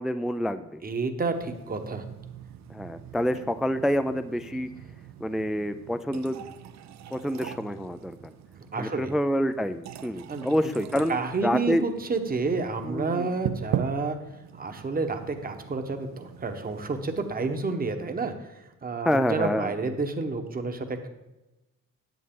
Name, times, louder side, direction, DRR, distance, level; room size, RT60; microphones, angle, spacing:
voice 1, 0.0-0.8 2.7-4.7 5.2-6.4 7.1-8.3 8.8-11.1 11.4-11.8 12.8-13.3 19.0-19.7, equal, ahead, 11 dB, 0.3 m, -27 dB
voice 2, 0.8-2.0 8.7-9.1 10.3-10.5 11.1-14.2 14.6-18.5 18.8-21.1, right 3 dB, 30° right, 6 dB, 1.1 m, -30 dB
sound 1, 1.3-17.6, right 9 dB, 65° right, 0.6 m, -40 dB
9.3 x 8.0 x 3.7 m, 1.0 s
cardioid pair, 90°, 30 cm